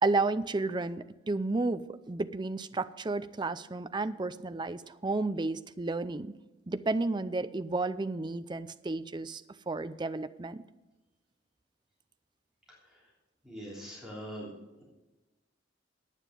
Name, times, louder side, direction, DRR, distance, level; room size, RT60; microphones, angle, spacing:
voice 1, 0.0-6.3 6.7-9.4 9.7-10.6, right 3 dB, 25° right, 12 dB, 0.5 m, -32 dB
voice 2, 13.4-14.5, equal, 5° right, -6 dB, 3.3 m, -42 dB
9.5 x 9.1 x 6.7 m, 1.1 s
head